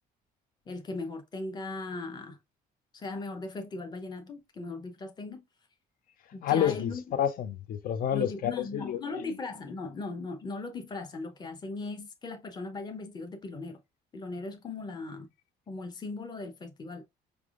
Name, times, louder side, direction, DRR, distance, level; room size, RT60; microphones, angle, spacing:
voice 1, 0.7-2.4 2.9-5.4 6.3-7.0 8.1-13.8 14.1-15.3 15.7-17.0, left 3 dB, 25° left, 0.8 m, -38 dB
voice 2, 6.4-9.3, left 9 dB, 60° left, 0.7 m, -29 dB
4.7 x 3.4 x 2.4 m
cardioid pair, 110°, 17 cm